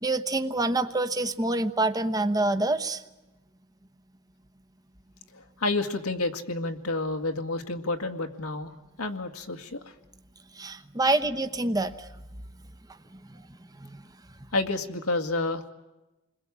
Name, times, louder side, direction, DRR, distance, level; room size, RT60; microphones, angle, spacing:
voice 1, 0.0-3.0 10.6-12.1 13.3-13.4 13.8-14.0, right 2 dB, 15° right, 9 dB, 1.0 m, -26 dB
voice 2, 5.3-8.7 9.0-9.8 11.1-11.2 14.5-15.7, left 2 dB, 90° left, 5 dB, 2.1 m, -30 dB
29.5 x 21.5 x 8.7 m, 1.1 s
head